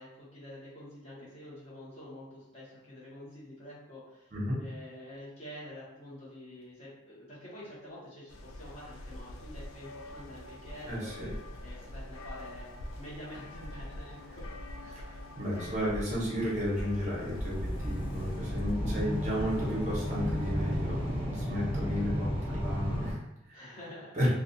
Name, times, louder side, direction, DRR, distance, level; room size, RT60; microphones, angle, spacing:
voice 1, 0.0-4.3 4.6-11.1 11.6-14.4 14.8-15.0 23.5-24.2, left 1 dB, 35° left, -8 dB, 1.0 m, -47 dB
sound 1, 8.3-21.3, left 1 dB, 80° left, 0.3 m, -43 dB
sound 2, 9.8-9.9 10.1-10.8 11.2-11.3 12.0-12.1 12.8-13.3 13.9-14.0 14.3-23.1, equal, 10° right, 0.5 m, -35 dB
voice 2, 10.9-11.3 14.9-23.2 23.5-23.6 24.1-24.3, equal, 35° right, -7 dB, 0.8 m, -33 dB
2.4 x 2.4 x 2.6 m, 0.85 s
head